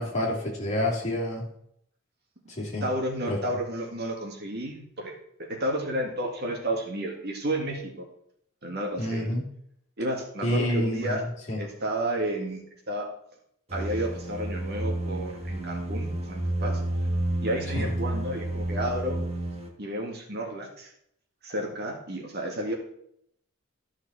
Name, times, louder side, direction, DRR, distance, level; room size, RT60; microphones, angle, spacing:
voice 1, 0.0-1.4 2.5-2.9 3.3-3.4 9.0-9.4 10.4-11.2 11.5-11.6 17.7-17.9, left 1 dB, 35° left, -3 dB, 2.8 m, -28 dB
voice 2, 2.8-5.1 5.4-8.1 8.6-9.3 10.0-11.2 11.6-12.6 12.9-13.1 13.7-16.8 17.4-19.2 19.8-20.9 21.4-22.7, right 1 dB, 55° right, 1 dB, 2.0 m, -31 dB
sound 1, 13.7-19.7, right 1 dB, 30° right, 1.4 m, -30 dB
13.0 x 6.3 x 4.3 m, 0.71 s
head